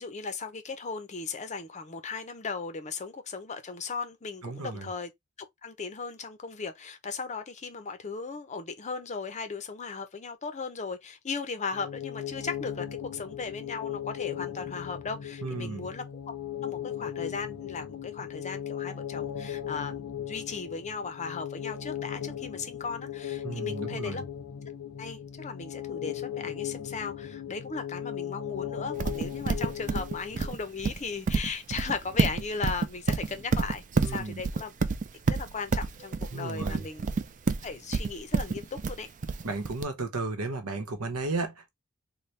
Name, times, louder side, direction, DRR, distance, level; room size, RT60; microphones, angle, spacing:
voice 1, 0.0-5.1 5.6-16.3 16.6-24.2 25.0-34.7 35.3-37.1 37.6-39.1, left 4 dB, 30° left, 0.6 m, -37 dB
voice 2, 4.4-4.9 15.4-15.9 23.4-24.2 34.0-34.4 36.3-36.9 39.4-41.7, right 3 dB, 85° right, 1.0 m, -34 dB
sound 1, 11.7-30.5, left 10 dB, 90° left, 0.6 m, -37 dB
Livestock farm animals working animals, 29.0-39.8, right 4 dB, 35° right, 0.4 m, -28 dB
4.0 x 2.1 x 3.2 m
head